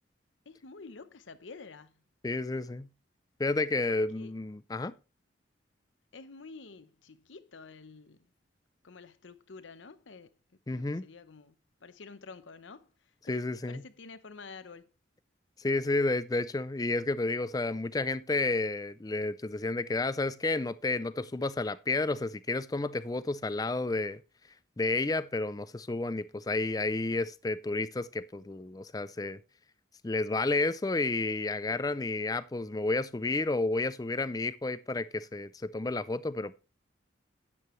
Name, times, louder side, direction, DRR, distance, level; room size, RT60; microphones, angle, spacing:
voice 1, 0.4-2.0 3.9-4.3 6.1-8.3 8.8-10.3 10.7-11.5 11.8-14.9, left 4 dB, 90° left, 0.8 m, -49 dB
voice 2, 2.2-2.9 3.4-4.9 10.7-11.1 13.3-13.8 15.6-24.2 24.8-29.4 30.0-36.5, left 2 dB, 20° left, 0.4 m, -31 dB
11.0 x 8.6 x 3.1 m
head